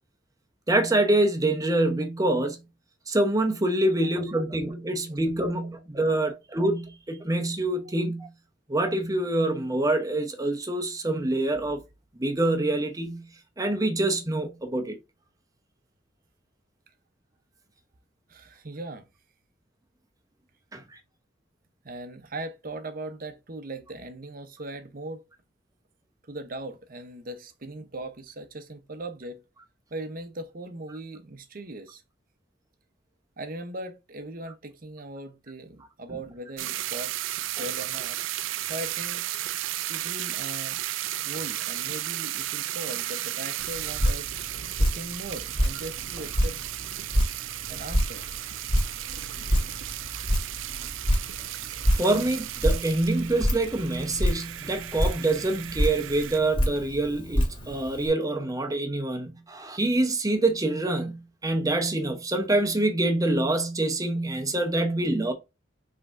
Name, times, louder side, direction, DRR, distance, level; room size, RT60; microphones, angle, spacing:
voice 1, 0.7-2.6 3.1-8.3 8.7-11.8 12.2-13.3 13.6-15.0 20.7-20.8 52.0-65.3, right 2 dB, 20° right, 0.9 m, -26 dB
voice 2, 3.8-4.5 6.2-6.3 18.3-19.0 21.8-25.2 26.3-29.4 29.9-32.0 33.4-37.1 37.6-38.2 38.7-39.3 39.9-40.8 41.2-44.3 44.8-47.0 47.7-48.3, right 1 dB, 50° right, 0.8 m, -39 dB
sound 1, 36.6-56.4, right 15 dB, 85° right, 0.3 m, -34 dB
Drip, 43.6-58.1, equal, 25° left, 1.8 m, -28 dB
5.4 x 3.7 x 2.6 m
head